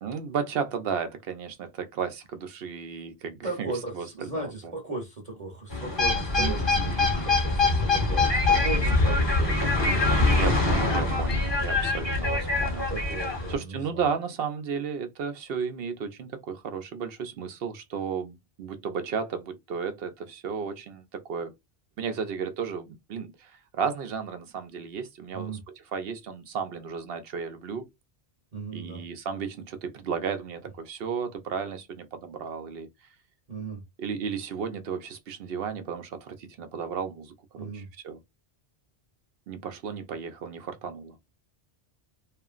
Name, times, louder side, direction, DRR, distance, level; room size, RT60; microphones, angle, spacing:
voice 1, 0.0-4.7 6.4-7.3 10.3-12.9 13.5-21.5 22.0-27.9 28.7-32.9 34.0-38.2 39.5-41.2, right 6 dB, 65° right, 0.8 m, -34 dB
voice 2, 3.4-6.9 7.2-9.9 12.9-14.0 25.3-25.6 28.5-29.0 33.5-33.8 37.6-37.9, right 2 dB, 40° right, 0.9 m, -36 dB
sound 1, 5.7-13.5, left 3 dB, 25° left, 0.9 m, -24 dB
2.8 x 2.4 x 2.3 m
omnidirectional pair, 1.1 m